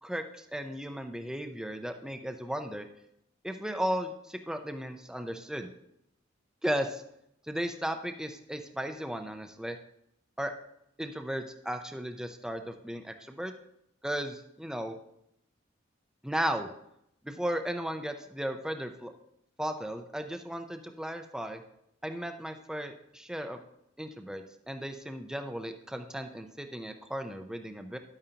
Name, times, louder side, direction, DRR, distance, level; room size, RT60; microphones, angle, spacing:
voice 1, 0.0-2.9 3.4-5.7 6.6-7.0 7.5-9.8 10.4-10.5 11.0-13.5 14.0-15.0 16.2-16.7 17.2-19.1 19.6-21.6 22.0-23.6 24.0-28.0, equal, 5° right, 6 dB, 0.5 m, -35 dB
11.0 x 8.8 x 2.8 m, 0.76 s
head